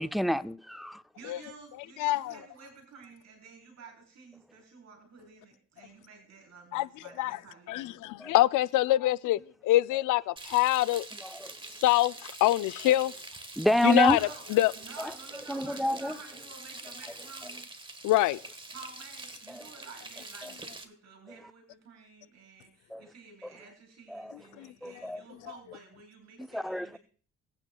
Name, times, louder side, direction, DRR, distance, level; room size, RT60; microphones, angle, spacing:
voice 1, 0.0-1.0 8.2-8.3 11.2-11.5 13.6-14.2 15.0-15.1 15.5-16.2 19.5-19.6 22.9-23.0 24.1-24.4 24.8-25.2 26.5-27.0, equal, ahead, 0.4 m, -28 dB
voice 2, 1.2-8.0 13.6-13.9 14.2-17.7 18.7-27.0, right 4 dB, 60° right, 4.0 m, -51 dB
voice 3, 2.0-2.3 6.7-6.9 7.2-7.4 7.7-11.1 11.8-12.1 12.4-13.1 13.8-14.2 14.5-14.7 18.0-18.4 24.6-24.7, left 15 dB, 85° left, 0.5 m, -24 dB
Frying (food), 10.4-20.8, right 2 dB, 15° right, 1.4 m, -45 dB
19.5 x 9.0 x 2.3 m
cardioid pair, 90°, 30 cm